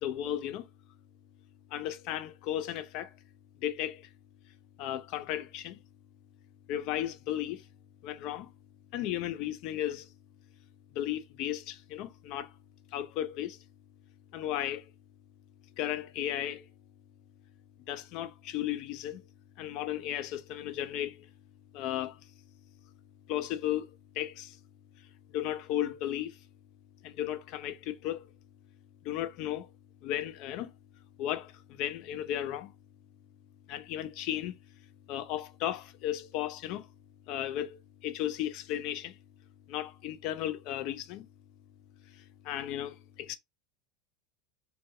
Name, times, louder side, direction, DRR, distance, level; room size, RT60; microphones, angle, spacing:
voice 1, 0.0-0.7 1.7-3.1 3.6-4.1 4.8-5.8 6.7-7.7 8.0-8.5 8.9-10.1 10.9-12.5 12.9-13.6 14.3-14.9 15.8-16.7 17.9-19.2 19.6-21.3 21.7-22.2 23.3-23.9 24.1-24.6 25.3-26.4 27.0-28.3 29.0-29.7 30.0-30.7 31.2-32.7 33.7-34.6 35.1-36.9 37.3-39.2 39.7-41.2 42.1-43.4, left 12 dB, 50° left, 0.4 m, -35 dB
3.4 x 2.6 x 2.3 m
figure-of-eight pair, 80°, 0 cm